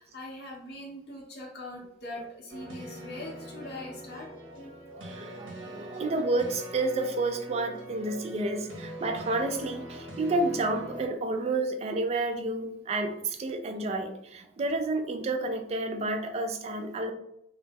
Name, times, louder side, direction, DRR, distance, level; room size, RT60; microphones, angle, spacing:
voice 1, 0.0-4.3, left 1 dB, 60° left, -4 dB, 0.7 m, -42 dB
sound 1, 2.5-11.0, right 1 dB, 85° right, 0.7 m, -43 dB
voice 2, 4.9-17.1, right 2 dB, 35° right, 5 dB, 0.3 m, -30 dB
2.3 x 2.0 x 3.3 m, 0.79 s
head